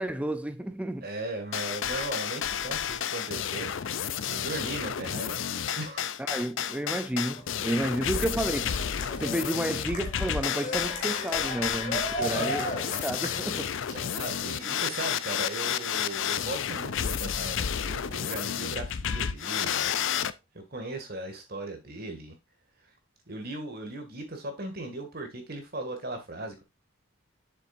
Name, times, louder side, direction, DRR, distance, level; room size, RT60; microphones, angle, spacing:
voice 1, 0.0-1.1 6.2-12.7 13.0-13.7, right 1 dB, 5° right, 0.4 m, -31 dB
voice 2, 1.0-3.7 4.2-5.4 5.8-6.1 11.6-11.7 12.2-12.7 13.9-19.9 20.5-22.3 23.3-26.6, right 2 dB, 45° right, 2.1 m, -38 dB
sound 1, 1.5-20.3, left 8 dB, 60° left, 0.5 m, -31 dB
Cheering, 7.2-14.3, equal, 40° left, 2.1 m, -37 dB
7.7 x 7.0 x 2.6 m
head